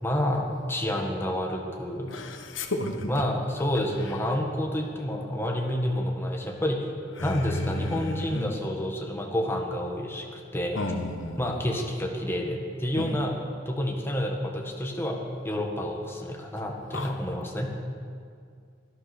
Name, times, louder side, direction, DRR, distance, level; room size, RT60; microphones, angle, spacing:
voice 1, 0.0-2.1 3.1-6.9 7.2-10.8 11.4-13.3 13.6-17.7, left 1 dB, 15° left, 0 dB, 1.6 m, -29 dB
voice 2, 2.1-3.1 4.0-4.2 7.2-8.5 10.7-11.6 13.0-13.1 16.9-17.1, left 2 dB, 75° left, 4 dB, 1.3 m, -33 dB
17.5 x 11.5 x 6.1 m, 2.2 s
head